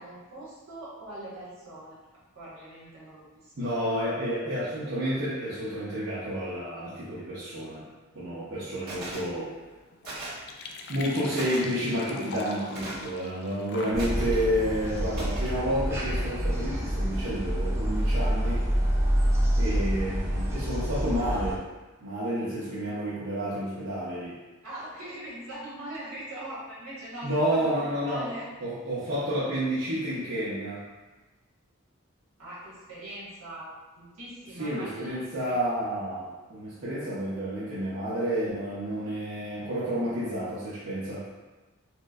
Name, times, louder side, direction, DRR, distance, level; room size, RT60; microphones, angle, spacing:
voice 1, 0.0-2.0 2.3-3.8 24.6-28.4 32.4-35.5, right 1 dB, 80° right, -8 dB, 1.4 m, -41 dB
voice 2, 3.5-7.8 8.1-9.5 10.9-18.7 19.6-21.6 22.0-24.4 27.2-28.3 28.6-30.8 34.6-41.3, equal, 65° right, -11 dB, 0.7 m, -30 dB
sound 1, 8.9-9.3 10.0-10.5 11.4-11.6 12.7-13.1 14.0-14.5 15.1-15.6, right 1 dB, 45° right, 1.4 m, -38 dB
sound 2, 9.2-16.0, left 3 dB, 50° left, 0.3 m, -44 dB
sound 3, 13.9-21.6, equal, 15° right, 0.4 m, -27 dB
4.3 x 2.1 x 2.4 m, 1.2 s
head